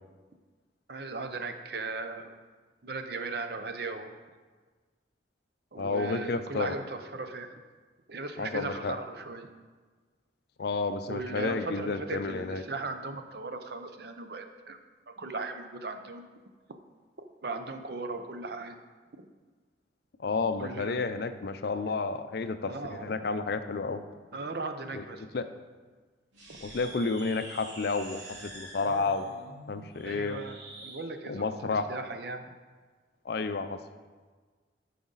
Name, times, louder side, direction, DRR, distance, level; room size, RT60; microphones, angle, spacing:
voice 1, 0.9-2.3 2.8-4.1 5.7-7.6 8.1-9.5 11.1-14.8 15.1-16.3 17.4-18.8 19.2-19.3 20.6-21.1 22.6-23.1 24.3-25.3 26.5-26.6 28.8-29.5 30.0-32.5, right 3 dB, 55° right, 7 dB, 0.6 m, -38 dB
voice 2, 5.8-6.7 8.4-8.9 10.6-12.6 20.2-24.0 24.9-25.0 25.3-25.4 26.6-29.3 29.7-30.4 31.3-31.8 33.3-33.8, left 4 dB, 55° left, 10 dB, 0.4 m, -31 dB
sound 1, 26.3-31.0, right 2 dB, 75° right, 2.4 m, -47 dB
12.0 x 5.0 x 3.9 m, 1.4 s
head